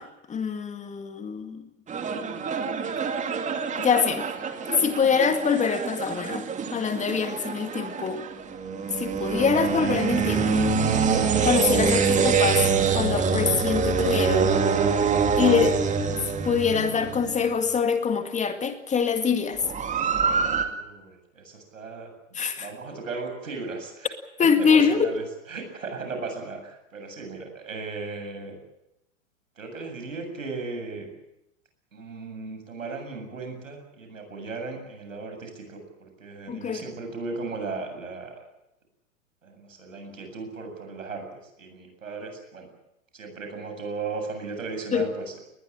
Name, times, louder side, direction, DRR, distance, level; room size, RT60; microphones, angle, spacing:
voice 1, 0.0-1.6 3.8-4.3 4.7-6.5 6.7-8.3 9.0-10.7 11.4-12.7 12.9-14.5 15.4-15.8 16.4-19.6 22.3-22.7 24.4-25.1 36.5-36.8 44.9-45.1, left 6 dB, 20° left, 8 dB, 2.2 m, -24 dB
sound 1, 1.9-17.5 19.6-20.7, right 5 dB, 20° right, 2.5 m, -25 dB
voice 2, 20.7-22.1 22.6-24.1 24.6-25.2 25.5-28.5 29.6-31.1 31.9-38.3 39.4-41.2 41.6-42.7 43.1-45.2, right 4 dB, 75° right, 5 dB, 7.9 m, -36 dB
21.0 x 21.0 x 8.8 m, 0.87 s
figure-of-eight pair, 105°, 39 cm